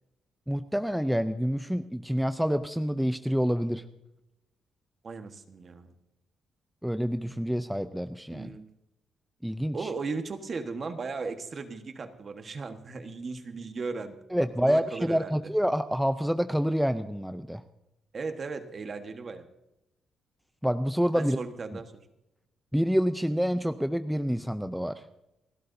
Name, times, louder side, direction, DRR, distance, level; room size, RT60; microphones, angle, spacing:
voice 1, 0.5-3.8 6.8-8.5 9.4-9.9 14.3-17.6 20.6-21.4 22.7-24.9, equal, ahead, 10 dB, 0.5 m, -27 dB
voice 2, 5.0-5.9 8.3-8.7 9.7-14.2 14.6-15.4 18.1-19.5 21.1-22.0, right 4 dB, 40° right, 8 dB, 1.3 m, -36 dB
29.5 x 12.0 x 2.7 m, 0.90 s
cardioid pair, 115°, 0 cm